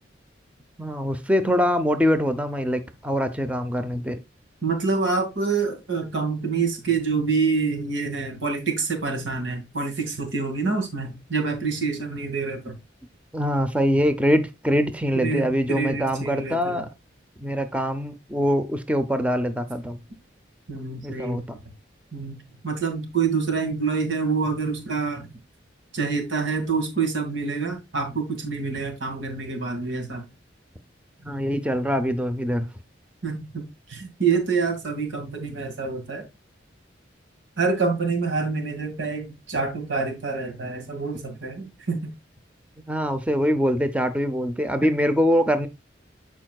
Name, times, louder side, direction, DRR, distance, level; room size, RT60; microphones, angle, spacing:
voice 1, 0.8-4.2 13.3-16.9 17.4-20.0 21.0-21.6 31.2-32.7 42.9-45.7, equal, 5° right, 0.6 m, -23 dB
voice 2, 4.6-12.7 15.2-16.8 20.7-21.4 22.1-22.4 22.6-25.3 25.9-30.3 33.2-33.6 33.9-36.3 37.6-42.1 44.8-45.0, right 4 dB, 85° right, 2.1 m, -26 dB
12.5 x 4.5 x 2.3 m
head